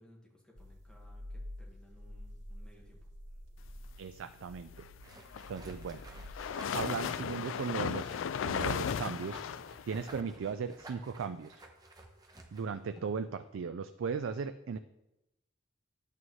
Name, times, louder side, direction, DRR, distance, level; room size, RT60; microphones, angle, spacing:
voice 1, 0.0-3.0, equal, 5° left, -3 dB, 1.7 m, -60 dB
sound 1, 0.5-6.3, left 1 dB, 70° right, 2.0 m, -48 dB
voice 2, 4.0-4.9 5.5-6.0 6.7-9.4 9.9-11.6 12.5-14.8, right 5 dB, 90° right, 10 dB, 0.4 m, -37 dB
sound 2, 5.0-13.2, right 1 dB, 20° right, 1.0 m, -52 dB
sound 3, 5.1-10.2, left 7 dB, 85° left, 0.3 m, -36 dB
11.0 x 8.4 x 3.2 m, 0.91 s
head